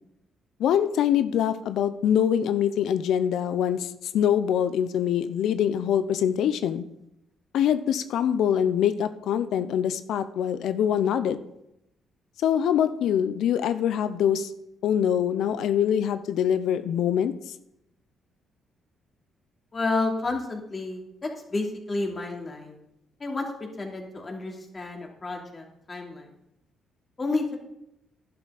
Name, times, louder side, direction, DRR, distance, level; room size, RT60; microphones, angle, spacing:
voice 1, 0.6-6.8 7.5-11.4 12.4-14.5 14.8-17.3, left 9 dB, 80° left, 12 dB, 0.6 m, -24 dB
voice 2, 19.7-22.7 23.2-23.5 23.8-26.3 27.2-27.6, left 3 dB, 30° left, 1 dB, 3.1 m, -30 dB
11.5 x 11.5 x 4.2 m, 0.82 s
cardioid pair, 90°, 0 cm